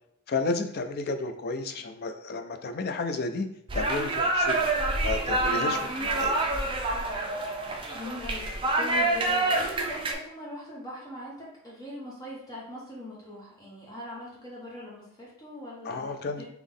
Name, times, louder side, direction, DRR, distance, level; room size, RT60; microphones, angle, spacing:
voice 1, 0.3-3.5 3.7-4.7 5.0-6.5 15.8-16.4, left 3 dB, 45° left, 8 dB, 0.4 m, -32 dB
sound 1, 3.7-10.1, right 2 dB, 25° right, 0.5 m, -27 dB
voice 2, 5.5-5.8 7.8-16.4, equal, 15° left, -5 dB, 0.9 m, -41 dB
3.7 x 3.0 x 3.6 m, 0.77 s
head